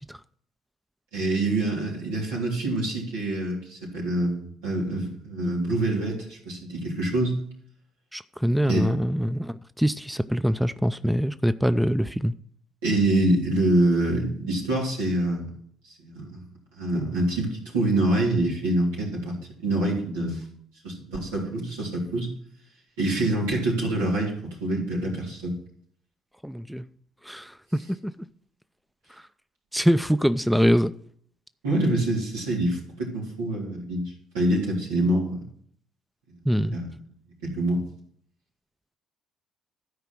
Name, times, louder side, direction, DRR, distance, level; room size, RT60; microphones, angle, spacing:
voice 1, 1.1-7.3 8.6-8.9 12.8-15.5 15.8-16.4 16.8-19.3 19.6-20.4 20.8-22.3 23.0-25.5 31.6-34.0 34.3-35.4 36.7-37.0 37.4-37.8, right 1 dB, 90° right, 3.7 m, -25 dB
voice 2, 8.1-12.3 26.4-26.9 27.2-28.1 29.7-30.9 36.5-36.8, equal, ahead, 0.5 m, -24 dB
13.0 x 4.9 x 6.0 m
hypercardioid pair, 60°, 0 cm